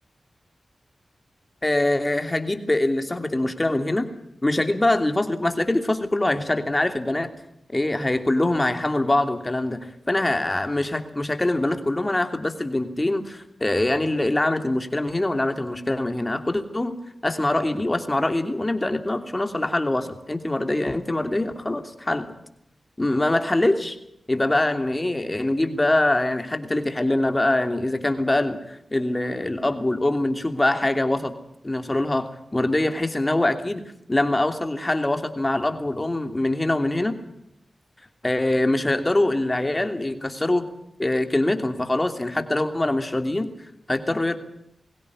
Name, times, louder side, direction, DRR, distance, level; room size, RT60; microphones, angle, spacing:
voice 1, 1.6-4.1 4.4-7.3 7.7-17.0 17.2-22.4 23.0-24.0 24.3-31.3 31.6-33.8 34.1-37.2 38.2-40.7 41.0-43.5 43.9-44.4, left 1 dB, 25° left, 7 dB, 2.9 m, -23 dB
22.0 x 17.0 x 9.8 m, 0.78 s
cardioid pair, 50°, 0 cm